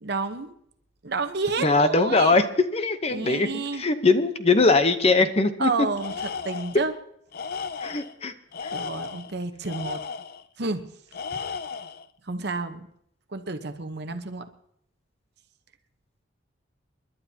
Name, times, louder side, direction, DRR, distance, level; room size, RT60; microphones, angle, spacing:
voice 1, 0.0-0.5 1.0-2.4 3.1-3.8 5.6-6.2 6.4-6.9 8.7-10.0 10.6-10.9 12.3-12.9 13.3-14.5, right 3 dB, 55° right, 8 dB, 1.0 m, -30 dB
voice 2, 1.6-5.7 7.8-8.3 8.6-8.7, left 3 dB, 30° left, 9 dB, 0.8 m, -21 dB
Tools, 6.0-6.9 7.3-8.1 8.5-10.4 11.1-12.1, left 5 dB, 50° left, 0.5 m, -35 dB
29.0 x 11.5 x 2.8 m, 0.71 s
head